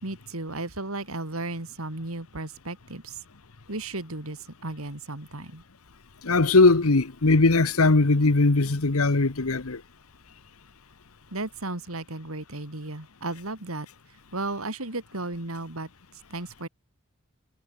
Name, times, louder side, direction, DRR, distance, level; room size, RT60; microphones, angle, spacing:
voice 1, 0.0-3.2 3.7-5.6 11.3-13.9 14.3-15.9 16.3-16.7, right 2 dB, 80° right, 3.4 m, -34 dB
voice 2, 6.2-9.8, left 3 dB, 85° left, 1.2 m, -20 dB
head